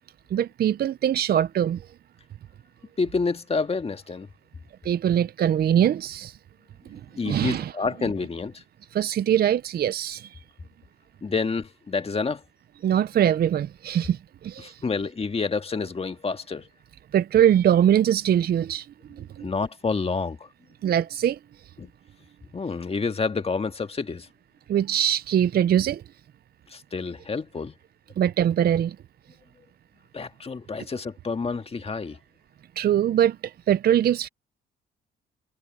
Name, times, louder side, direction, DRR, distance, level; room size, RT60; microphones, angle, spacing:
voice 1, 0.3-1.9 4.8-6.4 6.9-7.0 7.3-7.7 8.9-10.4 12.8-14.8 17.1-19.5 20.8-21.7 24.7-26.0 28.2-29.0 32.8-34.3, right 10 dB, 50° right, 0.5 m, -22 dB
voice 2, 3.0-4.3 7.2-8.6 11.2-12.4 14.6-16.7 19.4-20.5 21.8-21.9 22.5-24.3 26.7-27.8 30.1-32.2, left 4 dB, 30° left, 1.8 m, -28 dB
cardioid pair, 90°, 20 cm